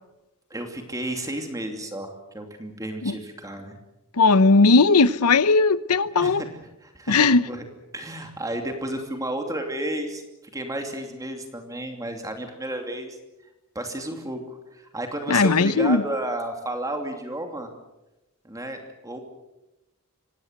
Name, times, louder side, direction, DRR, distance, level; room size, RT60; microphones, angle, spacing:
voice 1, 0.5-3.8 6.2-6.5 6.8-7.6 7.9-10.2 10.5-13.2 13.7-17.7 18.4-19.2, right 1 dB, 15° right, 2.8 m, -32 dB
voice 2, 4.2-6.4 7.1-7.5 15.3-16.0, left 3 dB, 90° left, 0.9 m, -18 dB
25.0 x 18.5 x 8.1 m
head